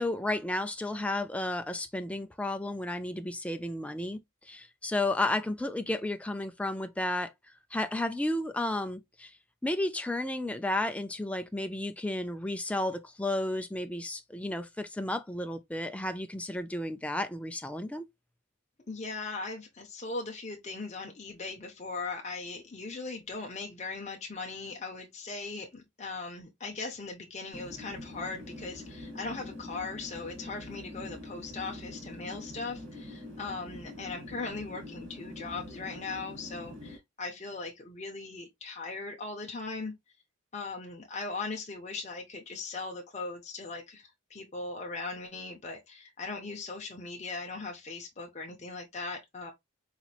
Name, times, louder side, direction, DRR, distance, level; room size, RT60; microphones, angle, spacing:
voice 1, 0.0-4.2 4.5-7.3 7.7-9.3 9.6-18.0, left 1 dB, 5° left, 0.3 m, -32 dB
voice 2, 18.9-39.9 40.5-49.5, left 3 dB, 30° left, 0.7 m, -39 dB
sound 1, 27.5-37.0, left 1 dB, 65° right, 2.1 m, -44 dB
4.0 x 3.0 x 2.3 m
head